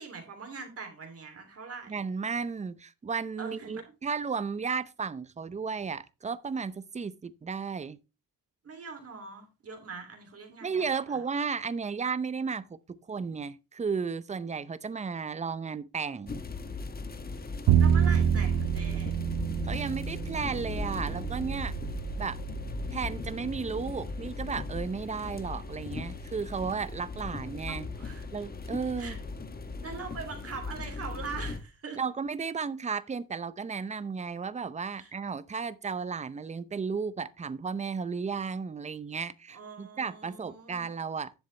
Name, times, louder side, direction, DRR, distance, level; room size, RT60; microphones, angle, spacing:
voice 1, 0.0-1.9 3.4-3.8 8.6-11.2 17.8-19.1 27.7-28.3 29.0-29.2 29.8-32.0 34.9-35.1 39.5-40.9, right 4 dB, 40° right, 3.0 m, -42 dB
voice 2, 1.9-8.0 10.6-16.4 19.6-21.8 22.2-22.4 22.9-27.9 28.3-29.2 32.0-41.3, right 5 dB, 20° right, 0.6 m, -34 dB
sound 1, 16.3-31.6, left 3 dB, 25° left, 1.1 m, -38 dB
Bowed string instrument, 17.7-23.9, right 9 dB, 80° right, 0.8 m, -28 dB
11.0 x 7.2 x 3.3 m
cardioid pair, 105°, 36 cm